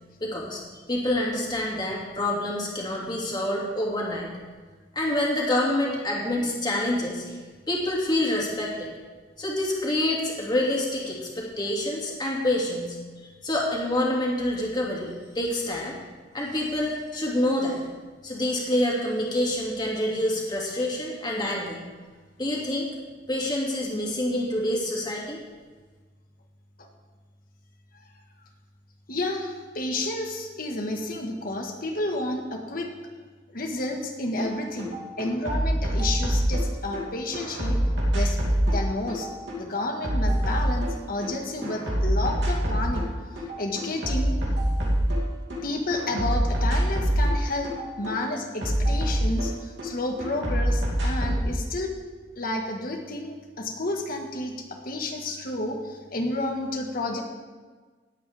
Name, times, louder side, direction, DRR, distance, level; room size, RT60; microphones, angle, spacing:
voice 1, 0.2-0.6 0.9-4.3 4.9-7.4 7.7-8.9 9.4-16.0 16.3-17.8 18.2-21.8 22.4-22.9 23.3-25.4, left 1 dB, 25° left, -3 dB, 2.4 m, -27 dB
voice 2, 29.1-32.9 33.5-37.8 38.1-38.4 38.7-39.3 39.6-43.1 43.6-44.4 45.5-51.9 52.4-57.2, left 2 dB, 55° left, 2 dB, 1.6 m, -31 dB
sound 1, 34.4-34.5 34.8-37.0 37.3-41.3 41.6-43.1 43.4-45.6 45.9-49.9 50.2-51.5, equal, 90° right, 2.9 m, -25 dB
18.5 x 8.4 x 3.6 m, 1.4 s
head